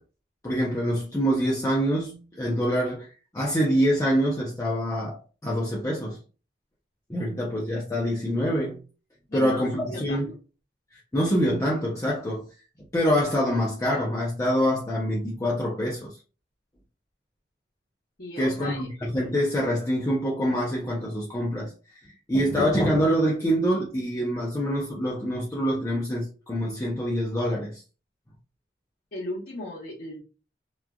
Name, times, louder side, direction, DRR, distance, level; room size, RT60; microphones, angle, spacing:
voice 1, 0.4-3.1 3.3-5.2 5.4-6.2 7.1-8.8 9.3-10.3 10.9-12.4 12.9-16.1 18.4-21.7 22.0-27.8, equal, 20° left, 0.5 m, -25 dB
voice 2, 9.3-10.2 18.2-18.9 29.1-30.2, left 1 dB, 55° left, 1.0 m, -36 dB
3.0 x 2.3 x 2.2 m
head